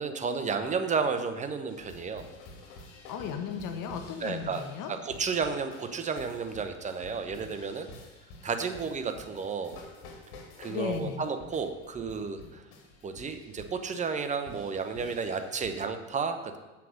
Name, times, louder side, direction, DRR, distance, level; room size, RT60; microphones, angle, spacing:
voice 1, 0.0-2.3 4.2-4.6 4.9-7.9 8.4-9.8 10.6-12.6 13.0-16.6, right 5 dB, 20° right, 8 dB, 0.8 m, -32 dB
sound 1, 1.7-15.7, left 2 dB, 65° left, 2.4 m, -50 dB
voice 2, 3.1-4.9 10.7-11.2, left 7 dB, 50° left, 7 dB, 1.4 m, -35 dB
7.5 x 5.9 x 6.5 m, 1.1 s
supercardioid pair, 110°, 39 cm